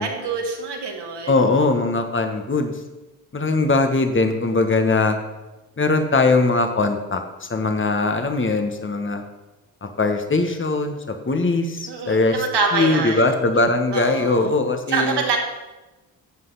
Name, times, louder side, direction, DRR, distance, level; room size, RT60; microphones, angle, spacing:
voice 1, 0.0-1.4 11.9-13.3 13.9-14.5 14.9-15.4, right 4 dB, 55° right, 1 dB, 2.7 m, -25 dB
voice 2, 1.3-2.7 3.3-5.2 5.8-9.2 10.0-11.0 11.2-12.4 12.7-15.2, left 3 dB, 25° left, 6 dB, 1.6 m, -20 dB
14.0 x 7.5 x 4.2 m, 1.1 s
hypercardioid pair, 50°, 48 cm